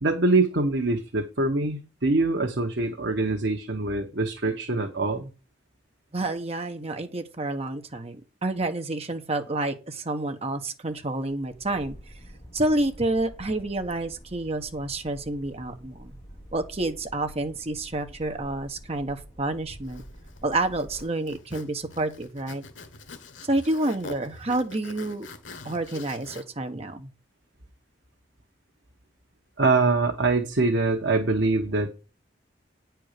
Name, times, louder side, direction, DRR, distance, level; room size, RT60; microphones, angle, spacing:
voice 1, 0.0-5.3 29.6-31.9, right 3 dB, 65° right, 1.2 m, -24 dB
voice 2, 6.1-8.2 8.4-12.0 12.5-16.1 16.5-20.0 20.4-22.6 23.4-25.3 25.6-27.1, right 2 dB, 35° right, 1.2 m, -29 dB
sound 1, 11.3-21.0, equal, 20° left, 2.8 m, -47 dB
Zipper (clothing), 19.8-26.4, left 3 dB, 85° left, 1.3 m, -45 dB
9.3 x 4.6 x 6.7 m
head